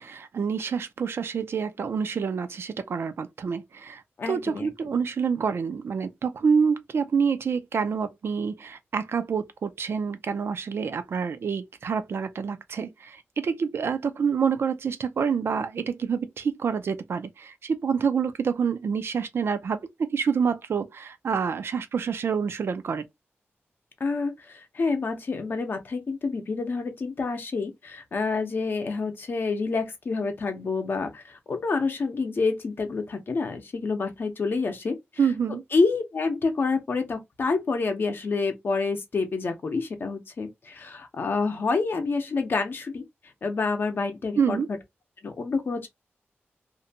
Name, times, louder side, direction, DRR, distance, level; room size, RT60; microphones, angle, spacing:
voice 1, 0.0-23.0 35.2-35.6 44.4-44.7, right 6 dB, 65° right, 0.4 m, -27 dB
voice 2, 4.2-4.7 24.0-35.0 35.7-43.0 43.4-44.7 45.2-45.9, left 4 dB, 50° left, 0.7 m, -28 dB
2.6 x 2.1 x 2.6 m
wide cardioid pair, 150°, 5 cm